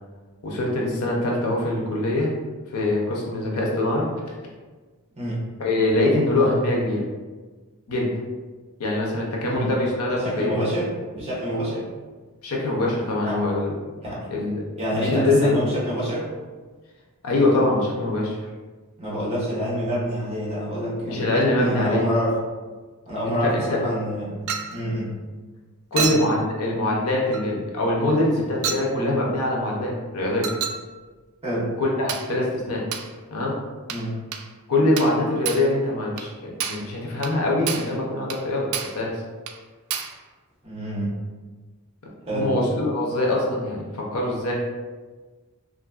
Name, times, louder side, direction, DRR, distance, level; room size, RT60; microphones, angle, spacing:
voice 1, 0.4-2.3 2.7-4.1 5.6-7.0 7.9-8.1 8.8-10.6 12.4-13.7 14.3-14.7 14.9-15.6 17.2-18.4 21.1-22.0 23.3-23.8 25.9-30.5 31.8-32.8 33.3-33.6 34.7-39.1 42.3-44.5, left 2 dB, 85° left, -2 dB, 0.7 m, -23 dB
voice 2, 10.1-11.8 13.2-13.4 14.0-14.3 14.8-16.3 19.0-22.4 23.1-24.4 24.7-25.1 25.9-26.1 31.4-31.7 33.9-34.2 40.6-41.1 42.3-42.6, equal, 30° right, -7 dB, 1.1 m, -27 dB
Chink clink, 24.5-24.8 26.0-26.3 27.3-27.5 28.6-28.9 30.4-30.8 32.1-32.3 32.9-33.1 33.9-34.1 34.3-34.5 35.0-35.2 35.4-35.7 36.2-36.3 36.6-36.9 37.2-37.4 37.7-37.9 38.3-38.4 38.7-39.0 39.5-39.6 39.9-40.2, right 7 dB, 80° right, 0.3 m, -29 dB
2.9 x 2.5 x 2.4 m, 1.3 s
head